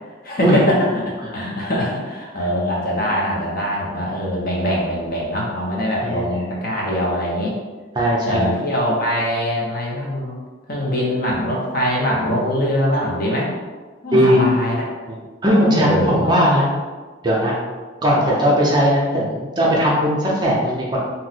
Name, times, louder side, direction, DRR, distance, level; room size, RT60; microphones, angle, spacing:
voice 1, 0.2-7.5 8.3-10.4 10.7-13.5 14.0-14.8 15.5-16.3, equal, 45° left, -3 dB, 0.6 m, -22 dB
voice 2, 6.0-6.5 7.9-8.6 12.3-12.4 14.1-14.4 15.1-15.2 15.4-16.7 17.2-17.5 18.0-21.0, equal, 20° right, -5 dB, 0.5 m, -18 dB
2.7 x 2.1 x 4.0 m, 1.4 s
head